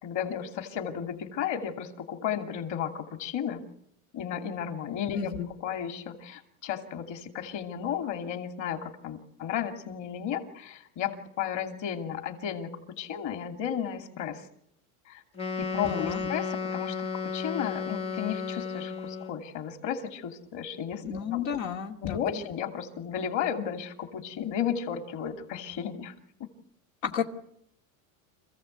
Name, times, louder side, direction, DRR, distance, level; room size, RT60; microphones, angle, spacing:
voice 1, 0.0-3.7 4.1-5.3 5.6-14.5 15.1-15.2 15.6-21.4 22.0-26.1 26.4-26.5, left 9 dB, 45° left, 6 dB, 2.7 m, -34 dB
voice 2, 5.1-5.5 15.8-16.3 21.0-22.4 27.0-27.2, left 8 dB, 90° left, 4 dB, 2.4 m, -32 dB
Wind instrument woodwind instrument, 15.3-19.4, left 5 dB, 15° left, 0.8 m, -33 dB
27.0 x 15.5 x 8.1 m, 0.74 s
supercardioid pair, 130°, 40 cm